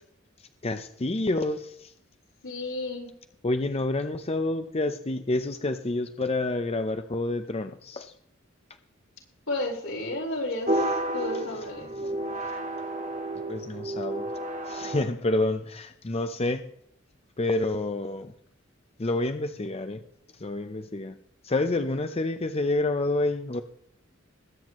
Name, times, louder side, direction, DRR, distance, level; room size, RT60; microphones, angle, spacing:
voice 1, 0.6-1.9 3.4-8.1 13.5-14.3 14.7-16.7 17.4-18.3 19.0-20.0 20.4-21.2 21.4-23.6, left 2 dB, 30° left, 8 dB, 0.6 m, -28 dB
voice 2, 2.4-3.1 9.5-12.1, left 2 dB, 80° left, -1 dB, 4.7 m, -32 dB
sound 1, 10.7-15.0, right 1 dB, 40° right, 1.6 m, -31 dB
21.0 x 9.1 x 3.1 m, 0.69 s
head